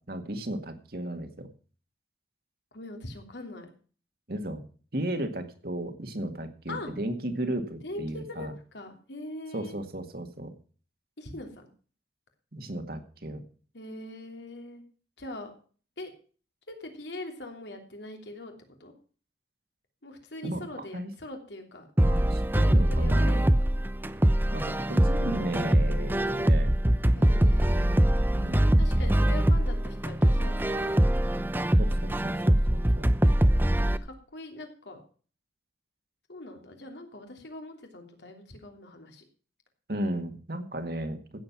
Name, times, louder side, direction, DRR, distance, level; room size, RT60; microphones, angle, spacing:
voice 1, 0.1-1.5 4.3-4.6 4.9-8.5 9.5-10.5 12.5-13.4 20.4-21.1 22.0-23.4 24.5-26.7 28.4-28.9 31.8-33.1 39.9-41.2, right 1 dB, 55° right, 7 dB, 1.9 m, -34 dB
voice 2, 2.7-3.7 6.7-6.9 7.8-9.8 11.2-11.7 13.7-14.8 15.2-15.5 16.0-16.1 16.7-18.5 18.8-18.9 20.0-21.9 22.5-23.5 27.1-27.9 28.8-30.9 34.0-35.0 36.3-39.2, left 1 dB, 80° left, 4 dB, 3.1 m, -42 dB
sound 1, 22.0-34.0, right 1 dB, 10° right, 0.6 m, -23 dB
16.0 x 7.8 x 5.9 m, 0.40 s
head